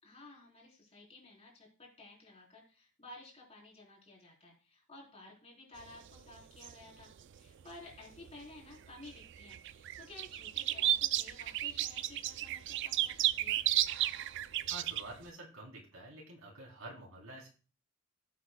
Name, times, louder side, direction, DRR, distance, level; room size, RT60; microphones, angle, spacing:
voice 1, 0.0-13.6, left 2 dB, 30° left, -2 dB, 3.7 m, -54 dB
sound 1, 5.8-8.3 8.7-15.2, right 13 dB, 60° right, 0.4 m, -33 dB
voice 2, 14.7-17.5, right 2 dB, 80° right, -1 dB, 3.4 m, -48 dB
17.0 x 8.2 x 2.2 m, 0.35 s
head